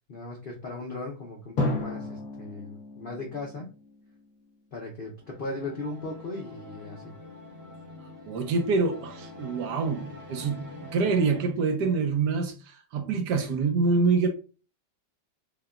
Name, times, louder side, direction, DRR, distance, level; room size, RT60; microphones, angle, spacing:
voice 1, 0.1-3.7 4.7-7.1, left 2 dB, 75° left, 0.5 m, -37 dB
Drum, 1.6-4.5, left 2 dB, 50° left, 1.4 m, -33 dB
sound 1, 5.2-11.5, left 2 dB, 40° right, 0.9 m, -45 dB
voice 2, 8.3-14.3, right 4 dB, 70° right, 1.3 m, -26 dB
6.6 x 2.2 x 2.3 m
omnidirectional pair, 1.9 m